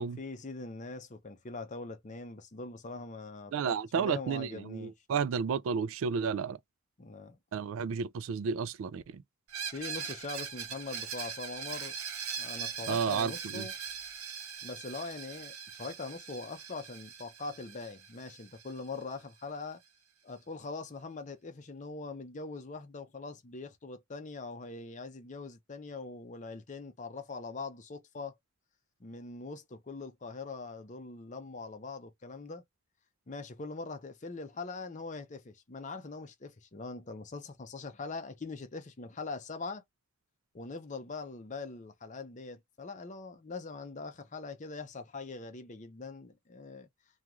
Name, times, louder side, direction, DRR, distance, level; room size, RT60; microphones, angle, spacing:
voice 1, 0.0-4.9 7.0-7.4 9.7-11.9 12.4-13.7 14.6-19.8 20.2-28.3 29.0-32.6 33.3-39.8 40.5-46.9, left 3 dB, 35° left, 0.6 m, -42 dB
voice 2, 3.5-6.6 7.5-9.2 12.9-13.7, right 6 dB, 70° right, 0.3 m, -32 dB
Screech, 9.5-19.1, right 7 dB, 85° right, 0.8 m, -41 dB
3.0 x 2.3 x 2.3 m
head